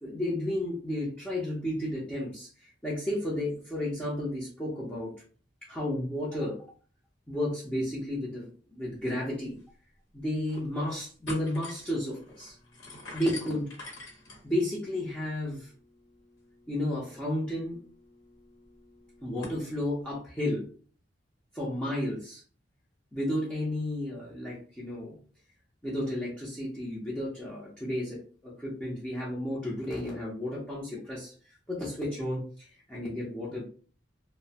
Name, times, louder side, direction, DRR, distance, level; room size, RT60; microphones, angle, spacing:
voice 1, 0.0-5.1 5.7-6.6 7.3-9.6 10.1-12.6 13.1-13.7 14.4-15.7 16.7-17.8 19.2-20.7 21.5-22.4 23.1-25.2 25.8-31.3 31.7-33.6, left 1 dB, 5° left, -7 dB, 0.6 m, -32 dB
sound 1, 9.6-9.7 10.2-10.7 11.0-19.6, left 2 dB, 75° left, 0.9 m, -47 dB
2.7 x 2.0 x 2.7 m, 0.42 s
head